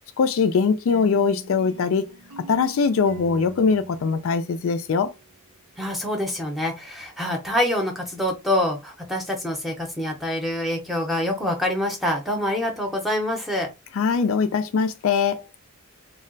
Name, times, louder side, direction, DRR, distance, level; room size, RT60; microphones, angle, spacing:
voice 1, 0.2-2.1 2.5-5.1 14.0-15.4, left 5 dB, 65° left, 0.4 m, -22 dB
sound 1, 0.9-5.8, right 4 dB, 90° right, 0.7 m, -44 dB
voice 2, 5.8-13.7, left 1 dB, ahead, 0.6 m, -26 dB
2.3 x 2.1 x 3.8 m
head